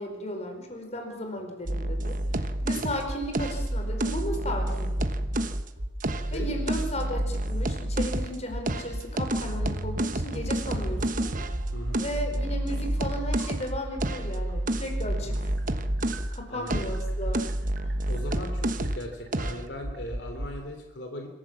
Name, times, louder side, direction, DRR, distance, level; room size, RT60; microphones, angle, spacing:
voice 1, 0.0-2.2 2.6-5.0 6.3-11.3 12.0-15.4 16.3-17.4, equal, 40° left, 4 dB, 4.9 m, -35 dB
sound 1, 1.7-5.6 6.0-8.4 8.7-16.3 16.7-19.0 19.3-19.6, right 1 dB, 50° right, 1.2 m, -29 dB
sound 2, 3.0-3.2 3.6-3.8 4.1-5.4 5.8-5.9 6.3-7.6 7.9-8.1 8.5-9.8 10.1-14.1 14.5-20.5, equal, 75° right, 3.6 m, -36 dB
voice 2, 6.3-6.7 10.8-11.1 11.7-12.0 15.2-15.5 16.5-16.9 18.1-21.3, left 1 dB, 75° left, 4 dB, 3.2 m, -39 dB
26.0 x 15.0 x 7.5 m, 1.1 s
head